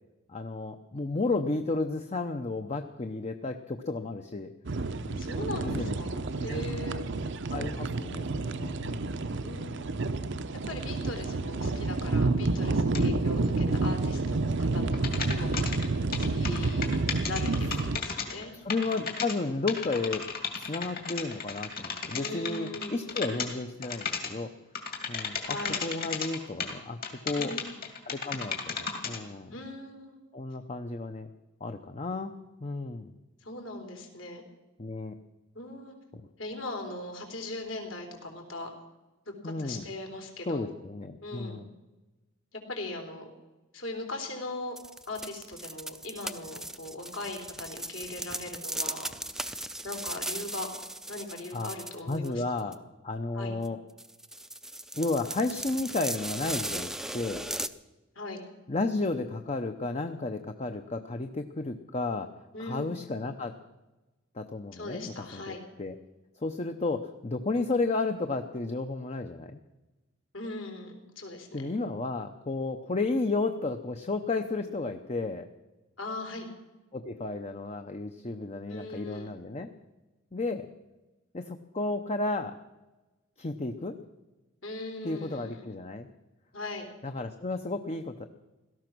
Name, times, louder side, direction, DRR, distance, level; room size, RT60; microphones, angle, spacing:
voice 1, 0.3-4.5 5.0-5.3 5.6-6.0 6.5-6.6 7.5-9.2 12.9-13.2 18.6-20.3 20.6-24.5 25.1-27.0 27.2-27.5 28.1-29.5 30.3-31.3 31.6-32.3 32.6-33.1 34.8-35.1 39.4-39.8 40.5-41.7 51.5-51.7 52.1-52.7 53.0-53.8 54.9-57.4 58.7-62.3 62.6-63.6 64.3-65.9 66.4-69.6 71.5-75.5 76.9-79.7 80.3-80.7 81.3-82.6 83.4-84.0 85.0-86.1 87.0-88.3, left 3 dB, 35° left, 7 dB, 0.7 m, -33 dB
sound 1, 4.7-18.0, right 3 dB, 65° right, 0.7 m, -29 dB
voice 2, 5.2-7.1 9.4-10.0 10.7-15.0 15.3-15.6 16.1-18.5 22.2-23.2 25.4-25.8 27.4-27.7 29.5-30.2 33.4-34.4 35.5-35.9 36.4-38.7 39.3-40.7 41.2-41.6 42.5-43.3 43.7-44.8 45.1-49.1 49.8-50.7 51.1-52.7 53.3-53.6 58.2-58.4 62.5-62.9 64.7-65.6 70.3-71.7 76.0-76.5 78.7-79.3 84.6-85.6 86.5-86.9, left 2 dB, 75° left, 2 dB, 3.6 m, -39 dB
sound 2, 12.9-13.0 14.9-18.4 18.7-19.4 19.7-23.5 23.8-24.3 24.8-26.7 27.0-29.2, left 6 dB, 50° left, 2.4 m, -34 dB
sound 3, 44.8-52.3 52.6-52.7 53.6-53.7 54.0-57.7, right 1 dB, 5° right, 0.5 m, -37 dB
17.0 x 13.5 x 6.1 m, 1.1 s
head